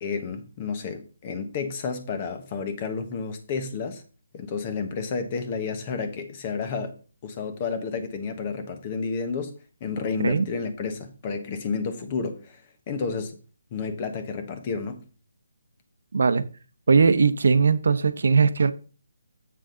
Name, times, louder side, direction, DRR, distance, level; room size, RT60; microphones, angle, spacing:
voice 1, 0.0-4.0 4.3-13.3 13.7-15.1, left 5 dB, 30° left, 1.2 m, -31 dB
voice 2, 16.1-16.4 16.9-18.7, right 5 dB, 65° right, 0.8 m, -19 dB
7.6 x 6.2 x 3.9 m
hypercardioid pair, 165°, 0 cm